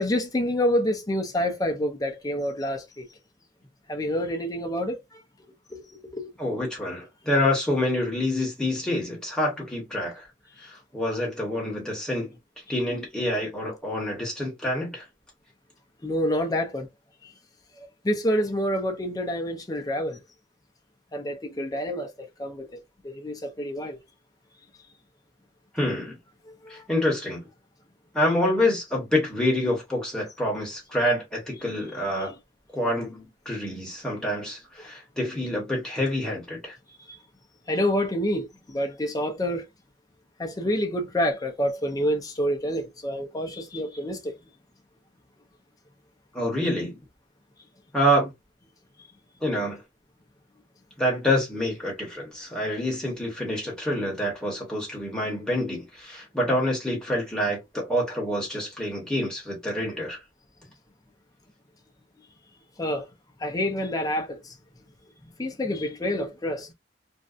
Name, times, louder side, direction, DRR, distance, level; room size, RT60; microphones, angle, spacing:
voice 1, 0.0-3.1 3.9-5.2 5.7-6.3 10.6-10.7 16.0-16.9 17.2-17.3 18.0-20.2 21.1-22.8 23.0-24.0 26.6-26.8 32.2-32.4 34.8-34.9 37.1-37.2 37.7-39.7 40.4-44.4 62.8-63.1 63.4-64.6 65.4-66.7, equal, 20° left, 0.5 m, -28 dB
voice 2, 6.4-10.2 10.9-12.4 12.7-15.0 25.7-26.2 26.7-27.4 28.1-32.3 32.7-36.7 46.3-47.0 47.9-48.3 49.4-49.8 51.0-60.2, left 1 dB, 5° left, 1.2 m, -27 dB
2.6 x 2.2 x 2.4 m
head